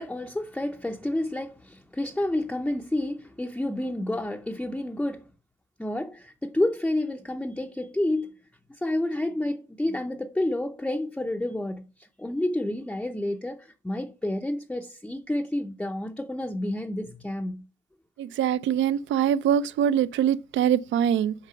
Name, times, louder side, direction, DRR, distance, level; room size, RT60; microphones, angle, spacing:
voice 1, 0.0-5.3 5.8-8.4 8.7-17.6, left 1 dB, 5° left, 0.5 m, -29 dB
voice 2, 18.2-21.3, right 9 dB, 70° right, 0.5 m, -23 dB
6.6 x 4.1 x 5.6 m
cardioid pair, 90°, 20 cm